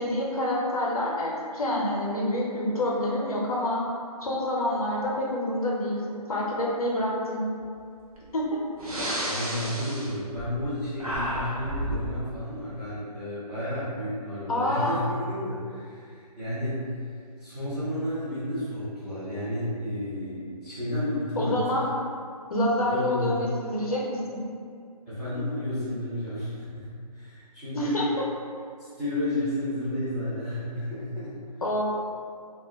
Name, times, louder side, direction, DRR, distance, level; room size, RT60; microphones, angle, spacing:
voice 1, 0.0-3.8 4.2-6.0 6.3-7.5 8.3-8.5 14.5-15.0 21.4-21.9 22.5-24.4 27.7-28.0 31.6-31.8, left 1 dB, 60° left, -4 dB, 0.6 m, -27 dB
Breathing, 8.1-8.3 8.7-10.7 11.0-12.1, equal, 60° right, 0.8 m, -31 dB
voice 2, 9.2-16.8 17.4-21.6 22.9-23.3 25.1-28.0 28.8-31.4, left 1 dB, ahead, -19 dB, 0.5 m, -32 dB
2.2 x 2.1 x 3.3 m, 2.3 s
figure-of-eight pair, 145°, 20 cm